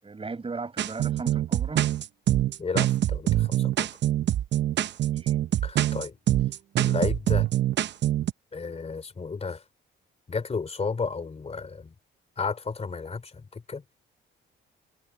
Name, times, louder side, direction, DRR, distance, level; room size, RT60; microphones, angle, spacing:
voice 1, 0.0-1.9 5.2-5.4, right 4 dB, 30° right, 7.5 m, -36 dB
sound 1, 0.8-8.3, right 12 dB, 60° right, 0.8 m, -24 dB
voice 2, 2.6-3.9 5.6-6.2 6.8-7.5 8.5-9.6 10.3-11.9 12.4-13.8, left 4 dB, 30° left, 3.1 m, -33 dB
cardioid pair, 90°, 20 cm